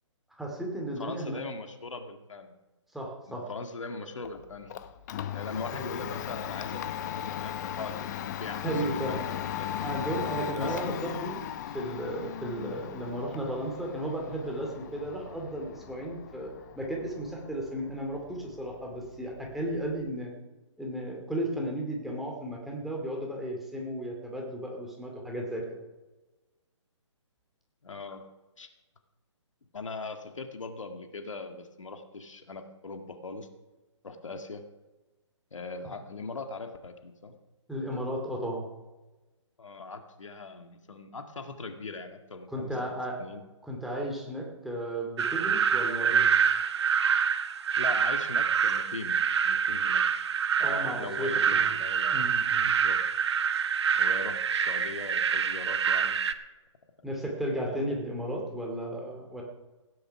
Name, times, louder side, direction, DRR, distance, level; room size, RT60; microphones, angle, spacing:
voice 1, 0.4-1.4 2.9-3.5 8.6-9.2 9.8-11.4 11.7-20.3 20.8-25.7 37.7-38.6 42.5-43.2 43.7-46.3 50.6-51.7 52.1-52.7 57.0-59.4, right 1 dB, ahead, -1 dB, 2.7 m, -34 dB
voice 2, 1.0-2.6 3.3-4.7 5.3-9.8 10.4-11.0 12.6-12.9 27.8-28.2 28.6-28.7 29.7-33.5 34.0-34.7 35.5-37.4 37.9-38.0 39.6-42.8 43.2-43.4 47.8-49.2 49.4-50.0 50.6-52.2 52.7-53.0 54.0-56.2 57.7-57.9, left 3 dB, 75° left, 6 dB, 1.9 m, -40 dB
Domestic sounds home sounds, 4.2-20.1, left 10 dB, 35° left, 0.8 m, -38 dB
sound 1, 45.2-56.3, right 7 dB, 55° right, 1.1 m, -26 dB
16.5 x 10.0 x 5.9 m, 1.1 s
figure-of-eight pair, 140°, 16 cm